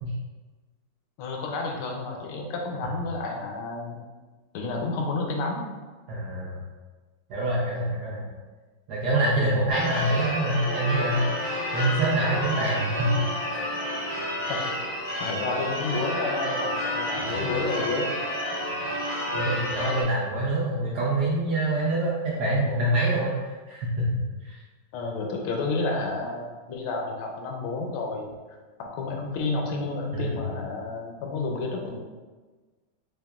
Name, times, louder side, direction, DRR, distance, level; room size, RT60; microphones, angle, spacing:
voice 1, 1.2-4.0 4.5-5.7 12.5-12.6 14.5-14.7 15.2-18.1 19.3-19.6 24.9-28.3 28.8-32.0, left 3 dB, 85° left, 1 dB, 1.5 m, -30 dB
voice 2, 6.1-6.6 7.3-8.2 8.9-11.3 11.7-13.2 13.5-13.6 17.2-17.6 19.3-24.1 24.4-24.5 30.1-30.4, right 1 dB, 70° right, -6 dB, 1.0 m, -26 dB
Church bell / Car / Alarm, 9.7-20.0, equal, 50° left, 1.2 m, -30 dB
4.7 x 2.8 x 2.3 m, 1.3 s
omnidirectional pair, 2.3 m